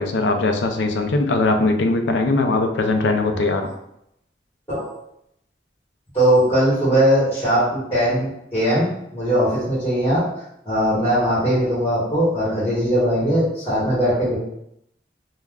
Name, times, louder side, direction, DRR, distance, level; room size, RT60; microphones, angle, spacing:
voice 1, 0.0-3.7, left 2 dB, 90° left, 5 dB, 0.4 m, -20 dB
voice 2, 6.1-10.3 10.6-14.4, equal, 15° left, -10 dB, 1.1 m, -20 dB
2.4 x 2.1 x 3.4 m, 0.78 s
head